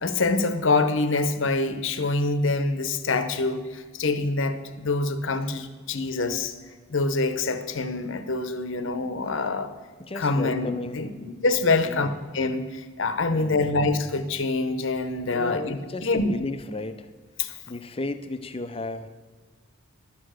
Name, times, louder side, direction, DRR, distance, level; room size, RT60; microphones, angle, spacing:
voice 1, 0.0-6.5 6.9-9.7 10.2-12.1 12.3-16.3 17.4-17.5, left 3 dB, 60° left, 10 dB, 0.8 m, -25 dB
voice 2, 10.0-11.1 11.8-12.2 13.3-13.7 15.3-17.1 17.7-19.1, left 2 dB, 25° left, 10 dB, 0.5 m, -34 dB
12.0 x 8.1 x 6.4 m, 1.4 s
head